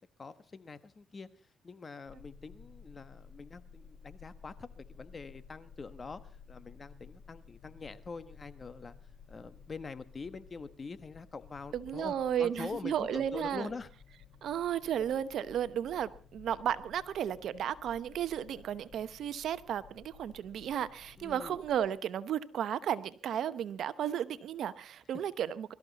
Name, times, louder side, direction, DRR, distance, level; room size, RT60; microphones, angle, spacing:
voice 1, 0.2-8.9 9.3-13.9 21.2-21.6, left 4 dB, 35° left, 12 dB, 1.2 m, -45 dB
sound 1, 2.1-21.9, left 6 dB, 50° left, 1.8 m, -55 dB
voice 2, 11.7-13.7 14.4-25.7, right 9 dB, 70° right, 14 dB, 0.9 m, -34 dB
23.0 x 13.5 x 4.1 m, 0.40 s
cardioid pair, 90°, 0 cm